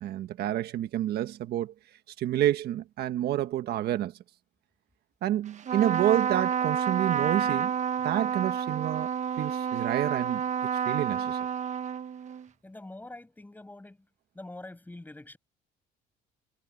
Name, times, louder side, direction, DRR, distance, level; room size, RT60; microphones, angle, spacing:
voice 1, 0.0-1.7 2.2-4.1 5.2-7.7 8.0-9.1 9.4-10.4 10.9-11.4, right 12 dB, 70° right, 1.5 m, -28 dB
Trumpet, 5.6-12.5, right 8 dB, 45° right, 1.3 m, -29 dB
voice 2, 12.6-14.0 14.3-15.4, left 2 dB, 10° left, 7.5 m, -45 dB
cardioid pair, 110°, 17 cm